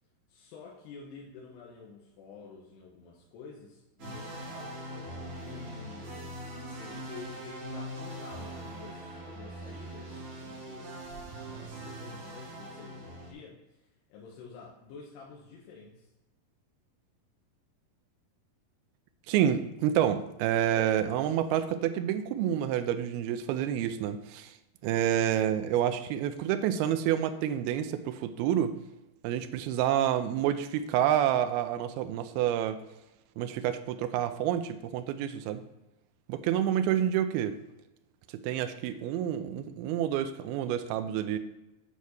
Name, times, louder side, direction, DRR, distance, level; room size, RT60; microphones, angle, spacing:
voice 1, 0.3-6.1 6.7-11.0 11.4-16.1, left 4 dB, 80° left, -3 dB, 3.1 m, -49 dB
sound 1, 4.0-13.3, right 1 dB, 45° right, 3.6 m, -42 dB
voice 2, 19.3-24.5 24.8-28.8 29.2-32.8 33.4-35.6 36.3-37.6 38.3-41.4, right 10 dB, 80° right, 9 dB, 2.4 m, -28 dB
9.3 x 4.1 x 6.4 m, 0.95 s
omnidirectional pair, 4.8 m